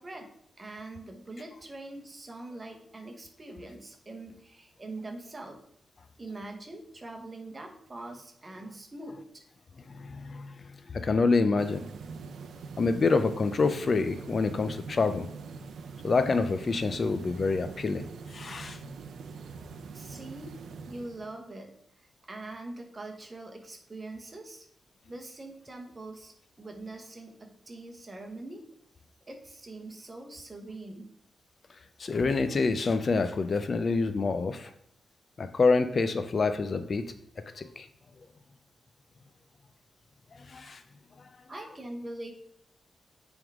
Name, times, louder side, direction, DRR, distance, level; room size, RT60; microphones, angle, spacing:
voice 1, 0.0-5.6 6.2-9.4 19.9-20.5 20.9-24.7 25.1-28.6 29.3-31.1 41.5-42.3, right 2 dB, 30° right, 3 dB, 1.0 m, -43 dB
voice 2, 9.9-11.8 12.8-15.3 16.0-18.8 32.0-34.7 35.4-37.1 37.5-37.9 40.4-40.8, left 4 dB, 40° left, 10 dB, 0.4 m, -27 dB
sound 1, 11.6-21.4, right 5 dB, 85° right, 0.5 m, -44 dB
9.1 x 3.6 x 3.5 m, 0.73 s
wide cardioid pair, 130°, 0 cm